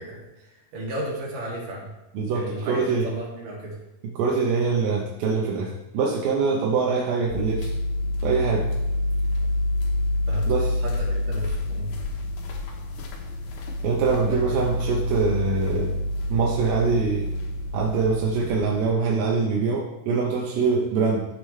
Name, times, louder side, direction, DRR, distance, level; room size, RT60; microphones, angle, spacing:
voice 1, 0.0-1.9 2.3-3.8 10.3-10.5 10.8-11.9 14.3-14.6, right 1 dB, 65° right, -4 dB, 4.0 m, -34 dB
voice 2, 2.1-3.1 4.2-7.7 8.2-8.7 10.5-10.8 13.8-15.9 16.3-17.3 17.7-21.3, right 4 dB, 85° right, -2 dB, 2.9 m, -24 dB
sound 1, 7.3-18.9, left 1 dB, 75° left, 2.8 m, -27 dB
13.5 x 6.5 x 3.3 m, 0.95 s
omnidirectional pair, 4.1 m